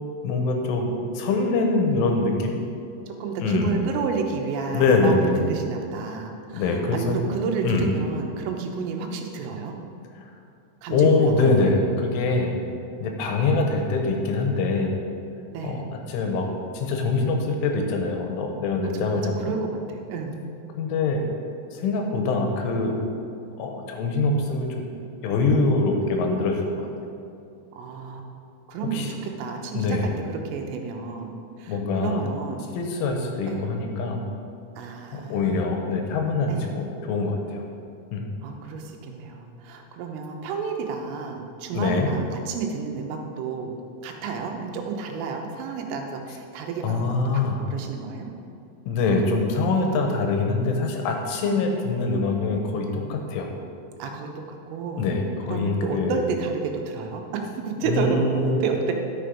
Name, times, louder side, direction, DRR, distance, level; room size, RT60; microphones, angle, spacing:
voice 1, 0.2-2.5 3.4-3.8 4.7-5.4 6.5-7.2 7.6-7.9 10.9-12.6 13.0-14.9 15.6-16.5 16.7-19.4 20.8-21.2 21.7-22.9 23.6-24.7 25.2-26.9 28.9-29.1 29.7-30.1 31.7-32.2 32.7-34.2 35.1-37.6 38.1-38.3 41.7-42.1 46.8-47.6 48.9-53.5 55.0-56.2 57.8-58.6, left 3 dB, 80° left, 3 dB, 3.5 m, -24 dB
voice 2, 3.1-9.8 10.8-11.6 15.5-15.9 18.8-20.4 27.7-28.2 28.7-30.0 30.3-32.6 33.5-33.7 34.8-35.6 36.5-36.8 38.4-43.7 44.0-47.2 47.6-48.3 51.5-51.6 54.0-55.1 55.5-58.9, right 5 dB, 85° right, 3 dB, 3.5 m, -31 dB
11.5 x 6.7 x 5.3 m, 2.6 s
omnidirectional pair, 5.7 m